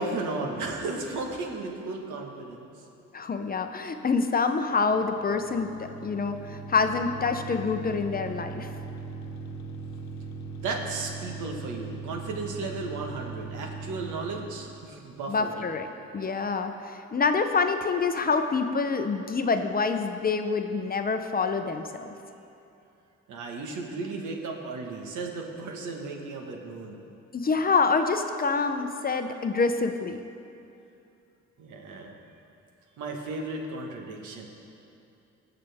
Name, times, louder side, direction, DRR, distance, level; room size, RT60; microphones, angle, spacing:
voice 1, 0.0-2.7 10.6-15.7 23.3-27.0 31.6-32.1 33.0-34.4, right 3 dB, 75° right, 1 dB, 1.5 m, -34 dB
voice 2, 3.1-8.7 15.3-15.9 16.1-22.1 27.3-30.2, left 4 dB, 30° left, 7 dB, 0.6 m, -26 dB
sound 1, 4.9-14.8, right 4 dB, 65° left, 0.9 m, -39 dB
19.5 x 6.8 x 3.5 m, 2.7 s
cardioid pair, 90°, 30 cm